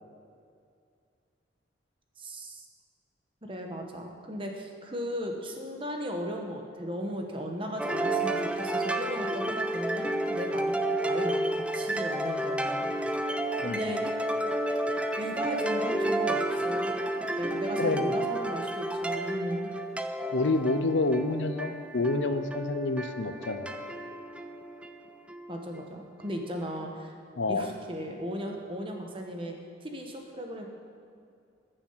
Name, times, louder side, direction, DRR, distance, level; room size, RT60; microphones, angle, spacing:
voice 1, 2.2-2.7 3.4-12.9 13.6-14.0 15.2-16.9 17.4-19.7 25.5-27.1 27.5-29.5 29.8-30.7, equal, 30° right, 2 dB, 1.2 m, -36 dB
sound 1, 7.8-25.6, right 1 dB, 5° right, 0.4 m, -31 dB
voice 2, 13.6-14.0 17.8-18.1 20.3-23.8 27.4-27.7, left 2 dB, 85° left, 10 dB, 0.7 m, -28 dB
14.5 x 7.0 x 5.8 m, 2.4 s
head